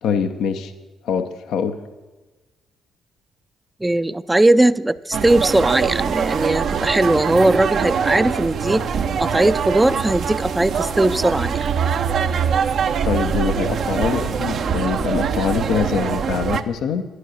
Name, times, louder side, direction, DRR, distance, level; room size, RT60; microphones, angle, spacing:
voice 1, 0.0-0.7 1.0-1.8 13.0-17.1, left 7 dB, 70° left, 8 dB, 0.7 m, -23 dB
voice 2, 3.8-8.8 9.2-11.7, right 1 dB, 15° right, 15 dB, 0.5 m, -19 dB
sound 1, 5.1-16.6, right 7 dB, 60° right, 0.6 m, -23 dB
11.0 x 9.6 x 6.3 m, 1.2 s
hypercardioid pair, 50°, 0 cm